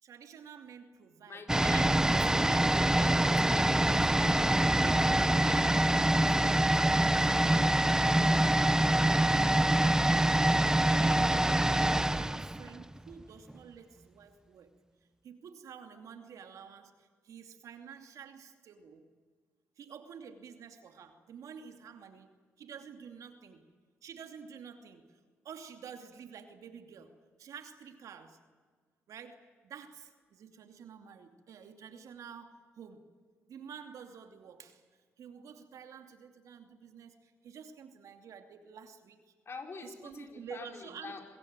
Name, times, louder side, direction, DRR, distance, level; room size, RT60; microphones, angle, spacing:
voice 1, 0.0-1.5 2.1-9.3 9.7-10.6 10.9-14.7 15.2-19.1 19.8-22.3 22.6-23.6 24.0-25.2 25.4-27.1 27.4-28.4 29.1-33.0 33.5-34.8 35.2-39.2 39.8-41.2, right 7 dB, 70° right, 6 dB, 2.7 m, -50 dB
voice 2, 1.3-4.7 39.4-41.2, left 4 dB, 45° left, 3 dB, 4.9 m, -46 dB
sound 1, 1.5-13.2 13.5-13.6, right 1 dB, 10° right, 0.9 m, -25 dB
25.5 x 21.5 x 9.0 m, 1.5 s
supercardioid pair, 65°, 6 cm